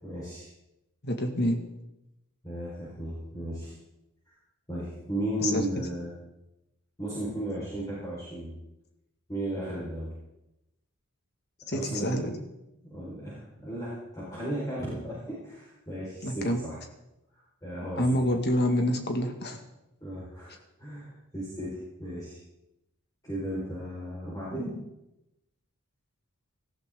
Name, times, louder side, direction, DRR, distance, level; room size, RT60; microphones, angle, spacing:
voice 1, 0.0-0.5 2.4-3.7 4.7-6.1 7.0-8.5 9.3-10.1 11.6-12.2 12.8-16.8 17.3-18.0 20.0-22.4 23.2-24.7, right 1 dB, 15° left, -8 dB, 5.0 m, -35 dB
voice 2, 1.0-1.6 5.4-5.6 11.7-12.4 16.2-16.6 18.0-19.6, equal, 50° left, 4 dB, 2.0 m, -27 dB
19.0 x 14.0 x 3.8 m, 0.91 s
head